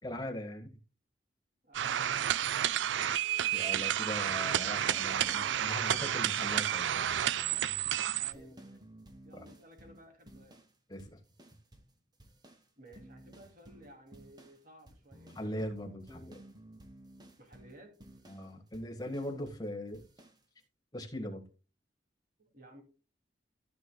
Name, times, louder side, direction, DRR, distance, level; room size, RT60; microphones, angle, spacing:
voice 1, 0.0-0.7 3.3-7.2 9.4-9.5 10.9-11.2 15.4-16.4 18.3-20.0 20.9-21.4, equal, 20° left, 1.7 m, -40 dB
voice 2, 1.6-2.6 8.2-8.8 9.2-10.6 12.8-15.5 17.4-17.9 22.4-22.8, right 1 dB, 50° right, 2.8 m, -56 dB
sound 1, 1.7-8.3, right 10 dB, 75° right, 0.4 m, -31 dB
sound 2, 5.2-10.7 11.0-11.9 12.2-19.7 19.9-20.4, right 1 dB, 25° right, 1.4 m, -55 dB
14.0 x 6.5 x 2.3 m
head